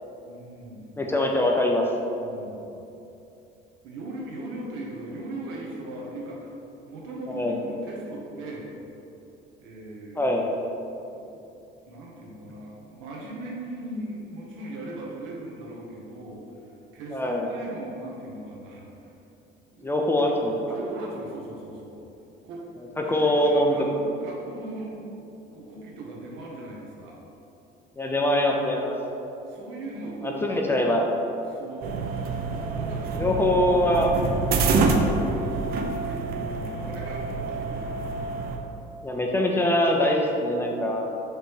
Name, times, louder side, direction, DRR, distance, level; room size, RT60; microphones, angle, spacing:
voice 1, 0.2-1.0 2.2-2.7 3.8-6.5 6.8-8.7 9.6-10.3 11.1-11.3 11.8-19.1 19.7-20.3 20.7-22.0 22.4-22.6 23.0-25.1 25.5-27.2 29.5-30.4 31.5-32.1 32.6-38.0 38.6-38.8, right 1 dB, 90° right, -3 dB, 1.4 m, -39 dB
voice 2, 1.0-1.8 7.3-7.5 10.2-10.4 17.1-17.5 19.8-20.5 23.0-23.8 28.0-28.9 30.2-31.1 33.2-34.1 35.0-35.2 39.0-41.1, left 1 dB, 10° left, 1 dB, 0.3 m, -23 dB
sound 1, 31.8-38.6, right 3 dB, 50° right, 0.5 m, -27 dB
6.5 x 3.4 x 4.7 m, 2.8 s
cardioid pair, 175°, 20 cm